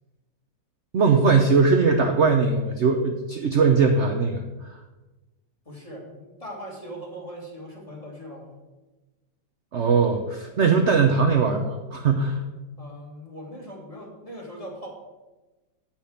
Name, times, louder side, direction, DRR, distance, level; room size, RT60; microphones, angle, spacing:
voice 1, 0.9-4.7 9.7-12.4, right 4 dB, 65° right, 4 dB, 0.7 m, -20 dB
voice 2, 5.7-8.6 12.8-14.9, equal, 20° left, -2 dB, 2.0 m, -40 dB
8.5 x 5.9 x 7.2 m, 1.1 s
omnidirectional pair, 2.1 m